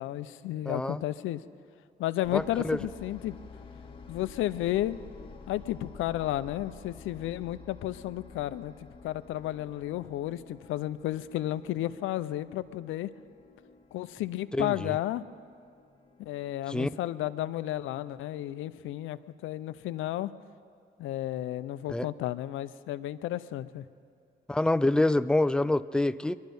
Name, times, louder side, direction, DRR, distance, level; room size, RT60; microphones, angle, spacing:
voice 1, 0.0-1.4 2.0-3.4 4.1-5.0 5.5-8.7 9.0-13.1 13.9-15.2 16.2-20.3 21.0-23.8, left 14 dB, 85° left, 14 dB, 0.5 m, -32 dB
voice 2, 0.7-1.0 2.3-2.8 14.5-15.0 16.7-16.9 21.9-22.1 24.5-26.4, left 2 dB, 5° left, 14 dB, 0.3 m, -26 dB
sound 1, 2.2-18.9, left 4 dB, 30° left, 1.4 m, -51 dB
22.0 x 11.5 x 5.3 m, 2.3 s
cardioid pair, 90°, 20 cm